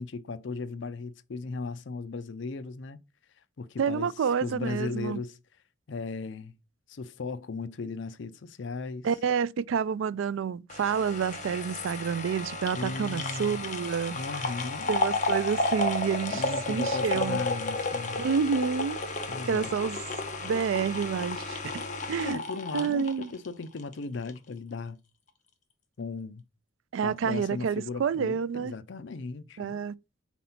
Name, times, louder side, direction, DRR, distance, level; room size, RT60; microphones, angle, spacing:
voice 1, 0.0-3.0 3.6-4.1 4.4-5.4 5.9-6.5 6.9-9.1 12.7-13.6 14.1-14.9 16.3-18.3 19.3-19.7 22.2-25.0 26.0-26.4 27.0-29.7, left 4 dB, 65° left, 0.5 m, -37 dB
voice 2, 3.8-5.2 9.0-14.1 14.9-17.5 18.2-19.0 19.5-20.0 20.4-22.4 22.7-23.3 26.9-28.7 29.6-29.9, right 6 dB, 75° right, 0.3 m, -29 dB
sound 1, 10.7-23.9 24.3-24.4, left 2 dB, 35° left, 0.9 m, -32 dB
4.2 x 4.1 x 5.5 m
head